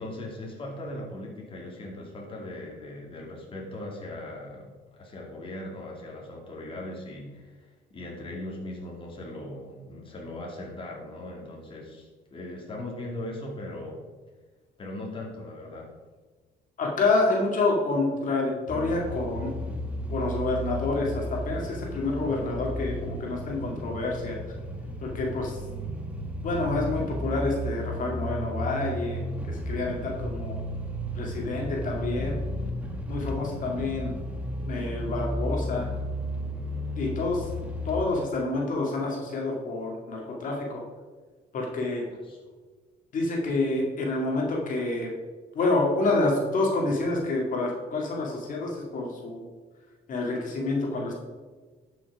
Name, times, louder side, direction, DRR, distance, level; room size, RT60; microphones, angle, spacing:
voice 1, 0.0-14.0 14.8-15.9 42.3-42.4, left 1 dB, 30° left, -1 dB, 2.5 m, -39 dB
voice 2, 16.8-19.8 20.1-24.4 25.0-25.6 26.4-30.6 31.1-32.4 33.1-34.1 34.7-35.9 37.0-37.5 37.8-40.8 41.5-42.0 43.1-45.1 45.5-49.4 50.1-51.1, left 2 dB, 50° left, -1 dB, 2.4 m, -28 dB
sound 1, 18.7-38.1, equal, 10° right, 1.6 m, -33 dB
11.5 x 6.3 x 4.9 m, 1.4 s
cardioid pair, 110°, 17 cm